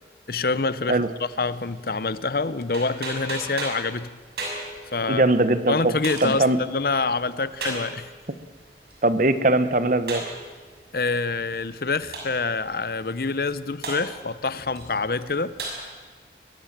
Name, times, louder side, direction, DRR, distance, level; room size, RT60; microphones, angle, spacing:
voice 1, 0.3-4.1 4.9-5.2 5.7-8.1 10.9-15.5, left 3 dB, 55° left, 16 dB, 0.8 m, -26 dB
sound 1, 1.2-15.8, right 2 dB, 65° right, 6.7 m, -39 dB
voice 2, 5.1-5.9 6.2-6.6 9.0-10.2, right 2 dB, 45° right, 12 dB, 1.2 m, -20 dB
22.5 x 21.5 x 7.5 m, 1.4 s
head